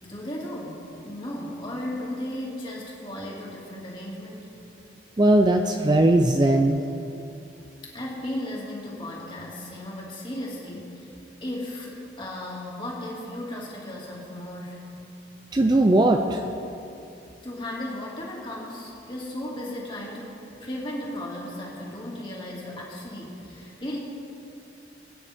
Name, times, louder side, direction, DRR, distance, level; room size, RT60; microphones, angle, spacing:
voice 1, 0.0-4.5 7.8-11.1 11.4-14.8 17.4-24.0, left 1 dB, 30° left, -4 dB, 2.4 m, -35 dB
voice 2, 5.2-6.8 15.5-16.4, right 1 dB, 25° right, 4 dB, 0.5 m, -19 dB
21.5 x 9.3 x 3.6 m, 2.8 s
head